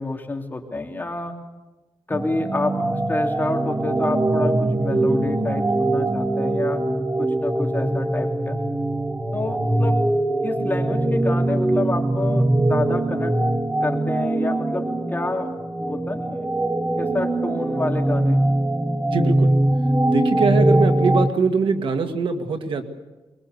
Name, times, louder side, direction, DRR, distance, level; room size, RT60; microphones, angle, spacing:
voice 1, 0.0-1.3 2.1-2.8 3.1-6.8 7.2-8.6 9.3-10.0 10.4-13.3 13.8-15.5 15.8-16.5 17.0-18.4, left 2 dB, 20° left, 2 dB, 3.0 m, -28 dB
sound 1, 2.1-21.3, right 1 dB, 15° right, 1.4 m, -22 dB
voice 2, 19.1-19.5 19.9-22.8, right 4 dB, 70° right, 6 dB, 2.1 m, -22 dB
23.0 x 21.5 x 8.2 m, 1.1 s
wide cardioid pair, 130°, 9 cm